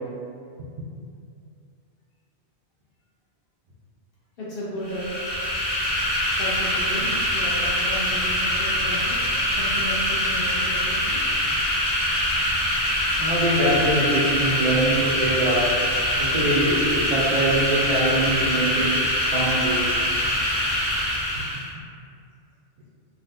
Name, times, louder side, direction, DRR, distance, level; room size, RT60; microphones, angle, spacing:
voice 1, 4.4-5.1 6.3-9.2 9.6-11.2, equal, 60° left, -8 dB, 1.1 m, -34 dB
sound 1, 4.8-21.7, equal, 40° left, 1.2 m, -24 dB
voice 2, 13.2-15.7 16.2-18.9 19.2-19.9, right 1 dB, 55° right, -8 dB, 0.6 m, -23 dB
3.7 x 2.3 x 2.5 m, 2.3 s
omnidirectional pair, 1.1 m